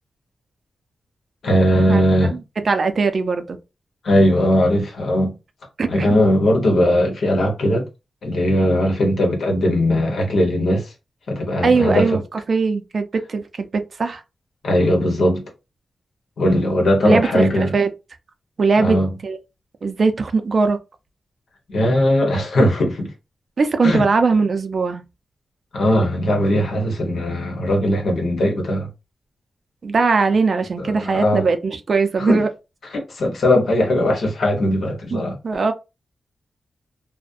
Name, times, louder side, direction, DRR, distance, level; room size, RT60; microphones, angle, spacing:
voice 1, 1.4-2.4 4.0-5.3 5.9-7.9 8.2-10.9 11.3-12.2 14.6-15.4 16.4-17.7 18.8-19.1 21.7-23.1 23.8-24.1 25.7-28.9 30.8-31.4 32.2-32.4 32.9-35.4, left 1 dB, 75° left, 1.0 m, -19 dB
voice 2, 2.7-3.6 5.8-6.2 11.6-12.2 12.5-14.2 17.0-17.5 17.7-17.9 18.6-19.0 19.2-19.4 19.8-20.8 23.6-25.0 29.8-32.5 35.1-35.7, right 4 dB, 50° right, 0.4 m, -20 dB
2.4 x 2.1 x 2.5 m
wide cardioid pair, 115°, 0 cm